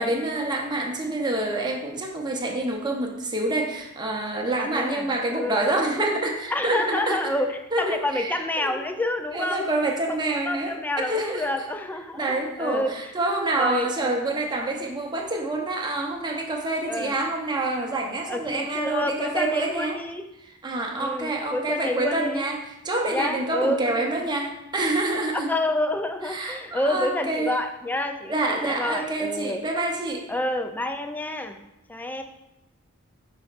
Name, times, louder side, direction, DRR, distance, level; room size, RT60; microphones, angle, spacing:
voice 1, 0.0-7.3 7.7-8.8 9.3-10.8 11.1-11.6 12.1-20.0 20.6-25.6 26.2-27.5 28.3-30.3, right 2 dB, 20° right, 1 dB, 0.7 m, -27 dB
voice 2, 4.6-5.6 6.5-9.6 10.1-12.9 13.6-13.9 16.9-17.1 18.3-20.3 21.0-22.5 23.1-24.1 25.5-29.6 30.3-31.6 31.9-32.2, left 1 dB, 10° left, 6 dB, 0.4 m, -28 dB
9.5 x 4.2 x 2.4 m, 0.89 s
head